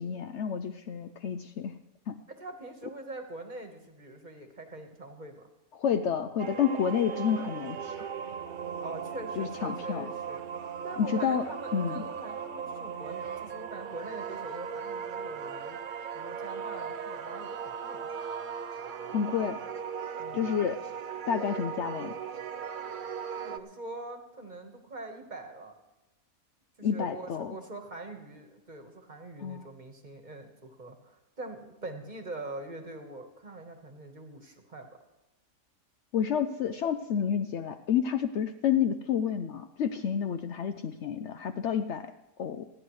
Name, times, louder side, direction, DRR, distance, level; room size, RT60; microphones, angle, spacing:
voice 1, 0.0-1.7 2.1-2.2 5.7-8.0 9.4-10.1 11.0-11.5 11.7-12.0 19.1-19.6 20.3-20.8 21.3-22.1 26.8-27.6 29.4-29.7 36.1-42.1 42.4-42.7, left 8 dB, 65° left, 8 dB, 0.8 m, -29 dB
voice 2, 2.3-5.5 8.8-10.4 10.8-15.8 16.1-18.1 20.2-20.4 23.4-25.7 26.8-34.9, right 2 dB, 35° right, 5 dB, 1.4 m, -43 dB
sound 1, 6.4-23.6, right 7 dB, 55° right, 0.5 m, -38 dB
29.0 x 9.9 x 3.2 m, 1.0 s
omnidirectional pair, 1.5 m